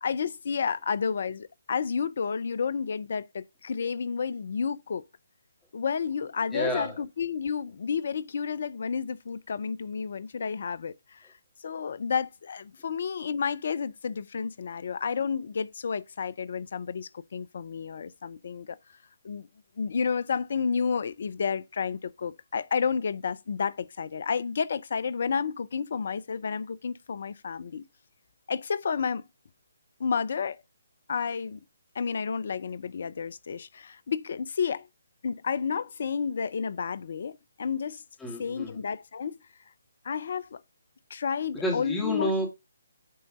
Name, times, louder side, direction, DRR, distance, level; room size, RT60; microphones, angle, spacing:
voice 1, 0.0-5.0 5.7-11.2 11.6-18.8 19.2-19.5 19.8-27.9 28.5-29.2 30.0-30.6 31.1-31.6 32.0-34.9 35.2-38.0 38.4-39.4 40.0-40.6 41.1-42.3, left 6 dB, 55° left, 0.5 m, -31 dB
voice 2, 6.5-7.0 38.2-38.8 41.5-42.5, equal, 10° left, 2.4 m, -30 dB
9.4 x 3.9 x 3.8 m
figure-of-eight pair, 140°, 0 cm